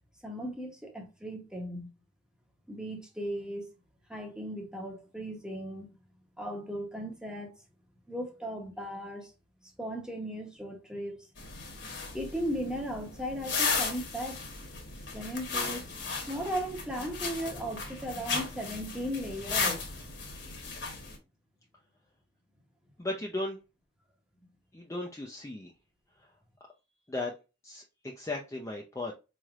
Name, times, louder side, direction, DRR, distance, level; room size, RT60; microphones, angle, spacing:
voice 1, 0.2-1.9 2.7-3.7 4.1-5.9 6.4-7.5 8.1-9.3 9.8-11.3 12.1-14.4 15.1-20.2, equal, 5° right, 0.8 m, -37 dB
Tightening Bone Corset, 11.4-21.2, left 4 dB, 65° left, 1.2 m, -35 dB
voice 2, 23.0-23.6 24.7-25.7 27.1-27.3 27.6-29.1, left 2 dB, 15° left, 0.4 m, -36 dB
4.1 x 3.2 x 2.4 m
head